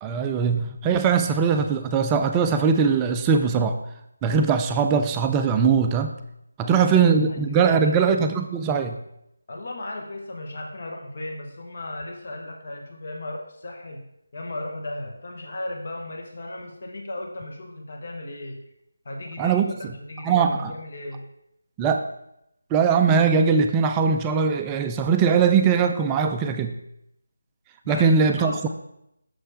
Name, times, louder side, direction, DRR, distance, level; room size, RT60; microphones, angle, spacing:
voice 1, 0.0-3.8 4.2-6.1 6.6-9.0 19.4-19.7 20.2-20.7 21.8-22.1 22.7-26.7 27.9-28.7, right 6 dB, 15° right, 6 dB, 0.3 m, -21 dB
voice 2, 6.6-8.1 9.5-14.0 14.3-18.6 19.0-21.3 27.8-28.7, left 1 dB, 50° left, 2 dB, 1.1 m, -35 dB
6.4 x 4.3 x 4.8 m, 0.80 s
figure-of-eight pair, 160°, 0 cm